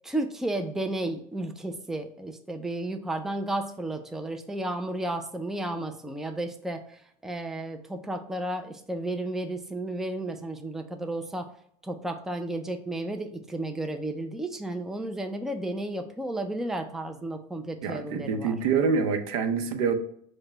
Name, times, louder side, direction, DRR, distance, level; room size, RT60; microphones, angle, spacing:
voice 1, 0.0-11.5 11.8-18.6, right 1 dB, ahead, 6 dB, 0.4 m, -33 dB
voice 2, 17.8-19.9, right 5 dB, 85° right, 7 dB, 0.7 m, -26 dB
4.7 x 2.2 x 4.4 m, 0.66 s
supercardioid pair, 120°, 17 cm